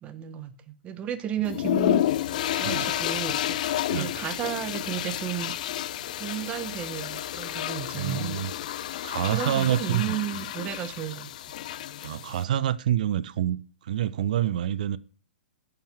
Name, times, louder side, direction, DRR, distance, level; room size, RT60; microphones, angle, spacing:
voice 1, 0.0-3.6 4.0-5.6 6.2-8.4 9.3-11.3, right 10 dB, 20° right, 1.2 m, -33 dB
sound 1, 1.4-12.4, left 12 dB, 50° left, 0.6 m, -30 dB
sound 2, 2.1-10.5, left 2 dB, 5° right, 3.1 m, -50 dB
voice 2, 7.9-8.5 9.0-10.2 12.0-15.0, right 11 dB, 50° right, 0.6 m, -27 dB
10.5 x 7.4 x 6.1 m
figure-of-eight pair, 110°, 5 cm